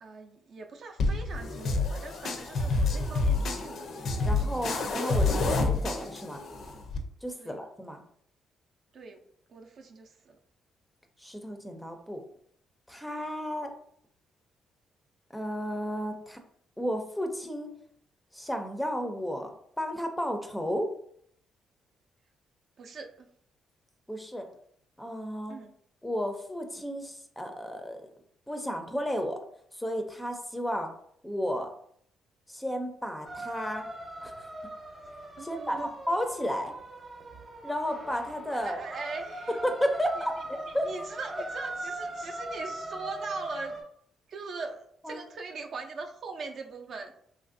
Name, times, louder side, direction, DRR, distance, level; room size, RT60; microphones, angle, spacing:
voice 1, 0.0-3.9 7.4-7.6 8.9-9.2 9.5-10.4 22.8-23.3 25.5-25.7 35.4-35.9 38.5-39.6 40.2-40.3 40.7-43.8 44.3-47.1, right 4 dB, 60° right, 3 dB, 0.4 m, -41 dB
sound 1, 1.0-7.0, left 3 dB, 65° left, 0.5 m, -28 dB
voice 2, 4.2-6.4 7.2-8.0 11.2-12.2 12.9-13.7 15.3-16.4 16.8-17.7 18.3-19.5 19.8-20.9 24.1-24.5 25.0-25.6 26.0-28.0 28.5-29.4 29.7-30.9 31.2-31.7 32.5-33.9 34.2-34.3 35.4-36.7 37.6-38.8 39.5-40.9 45.0-45.2, equal, 5° left, 5 dB, 0.4 m, -33 dB
sound 2, 33.2-43.8, right 1 dB, 20° right, 0.7 m, -40 dB
3.1 x 2.5 x 2.5 m, 0.65 s
cardioid pair, 90°, 0 cm